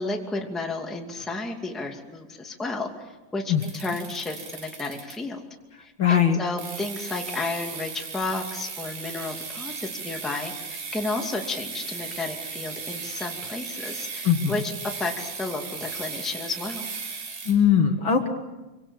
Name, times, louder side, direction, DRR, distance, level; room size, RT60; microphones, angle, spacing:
voice 1, 0.0-5.4 5.8-14.7 15.0-16.9, left 3 dB, ahead, 2 dB, 1.8 m, -32 dB
sound 1, 3.6-5.4 6.6-17.5, right 5 dB, 85° right, 5.7 m, -36 dB
voice 2, 6.0-6.4 14.2-14.6 17.5-18.3, left 8 dB, 45° left, 5 dB, 1.9 m, -20 dB
26.5 x 25.0 x 7.3 m, 1.1 s
omnidirectional pair, 3.9 m